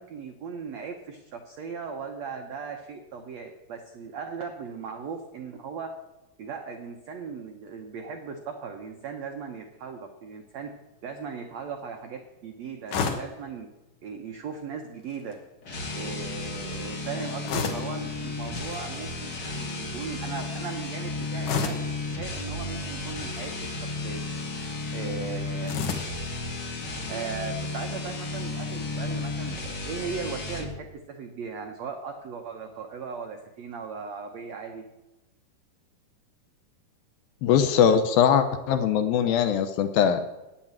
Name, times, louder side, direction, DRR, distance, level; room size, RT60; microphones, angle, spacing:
voice 1, 0.0-5.9 6.4-10.7 11.0-13.7 14.0-15.4 15.9-21.8 22.1-24.2 24.9-25.8 27.1-34.8, right 5 dB, 90° right, 4 dB, 1.5 m, -38 dB
sound 1, 12.9-13.4 15.0-15.4 17.5-18.0 18.6-18.8 21.4-21.9 23.2-23.6 25.6-26.2, left 5 dB, 60° left, 2.3 m, -30 dB
sound 2, 15.6-30.8, left 3 dB, 45° left, 1.4 m, -33 dB
voice 2, 37.4-40.2, left 8 dB, 75° left, 9 dB, 2.3 m, -21 dB
10.0 x 9.2 x 8.8 m, 1.0 s
omnidirectional pair, 4.7 m